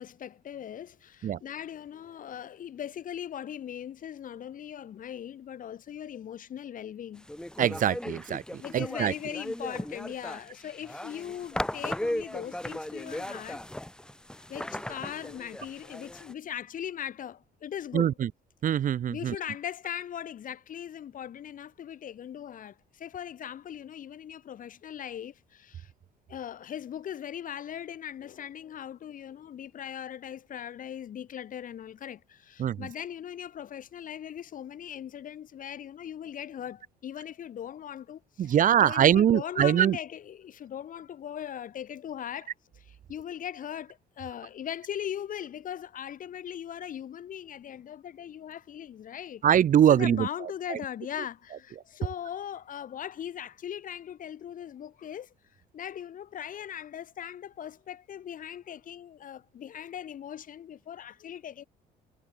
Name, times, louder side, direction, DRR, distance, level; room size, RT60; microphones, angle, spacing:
voice 1, 0.0-7.3 8.6-13.6 14.4-18.1 19.1-25.9 26.3-49.4 49.9-55.3 55.7-61.6, left 9 dB, 55° left, 5.1 m, -39 dB
sound 1, 7.3-16.3, left 1 dB, 5° left, 7.1 m, -37 dB
voice 2, 7.6-9.1 17.9-18.3 18.6-19.4 32.6-32.9 38.4-40.0 49.4-50.8, right 10 dB, 50° right, 2.0 m, -23 dB
cardioid pair, 110°, 17 cm